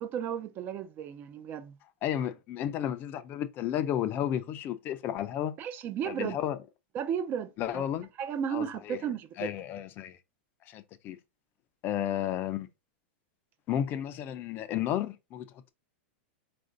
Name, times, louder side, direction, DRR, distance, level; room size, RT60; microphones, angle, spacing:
voice 1, 0.0-1.7 5.6-6.4 6.9-7.8 8.2-9.5, right 8 dB, 30° right, 0.5 m, -34 dB
voice 2, 2.0-5.5 6.0-6.6 7.6-8.1 8.5-9.0 9.4-10.2 10.7-11.2 11.8-12.7 13.7-15.7, left 10 dB, 35° left, 0.5 m, -32 dB
4.3 x 2.6 x 3.8 m
supercardioid pair, 145°, 6 cm